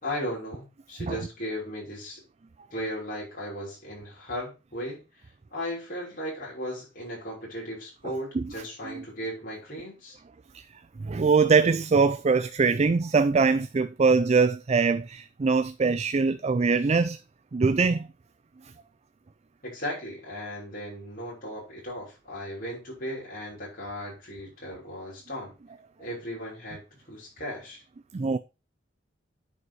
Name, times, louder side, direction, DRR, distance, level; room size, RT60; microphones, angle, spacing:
voice 1, 0.0-2.2 2.7-5.0 5.5-10.2 19.6-25.5 26.0-26.8 27.1-27.8, equal, 50° left, 5.7 m, -36 dB
voice 2, 11.0-17.2 17.5-18.1 28.1-28.4, right 4 dB, 35° right, 0.4 m, -22 dB
9.6 x 5.3 x 4.7 m
head